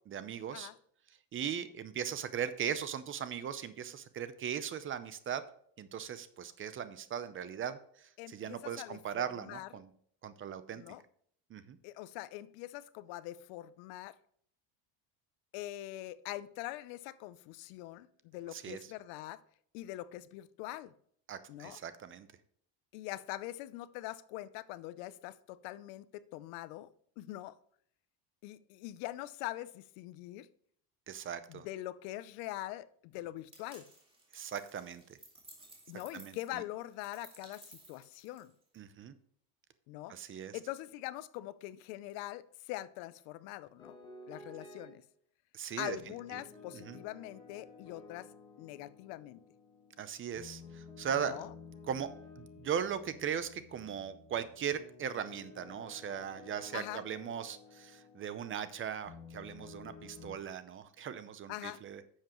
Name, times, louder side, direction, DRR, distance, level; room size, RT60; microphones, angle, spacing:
voice 1, 0.1-0.7 1.3-5.4 5.8-9.9 10.2-10.8 11.5-11.8 18.5-18.8 21.3-22.3 31.1-31.7 34.3-35.2 36.1-36.6 38.8-39.1 40.1-40.6 45.5-46.0 46.3-46.4 46.7-47.0 50.0-51.5 51.9-52.1 52.4-62.0, right 8 dB, 30° right, 0.6 m, -39 dB
voice 2, 8.2-9.7 10.8-11.0 11.8-14.2 15.5-19.4 19.7-20.9 21.5-21.8 22.9-26.9 27.2-27.6 28.4-30.5 31.5-33.8 35.9-38.5 39.9-44.0 44.3-45.0 45.8-48.3 48.6-49.4 51.2-51.5 56.7-57.0 61.5-61.8, left 15 dB, 80° left, 0.7 m, -43 dB
sound 1, 33.5-38.7, right 2 dB, 10° right, 2.1 m, -57 dB
sound 2, 43.8-45.0 46.0-60.4, left 4 dB, 10° left, 3.3 m, -53 dB
10.5 x 7.4 x 3.0 m
cardioid pair, 140°, 44 cm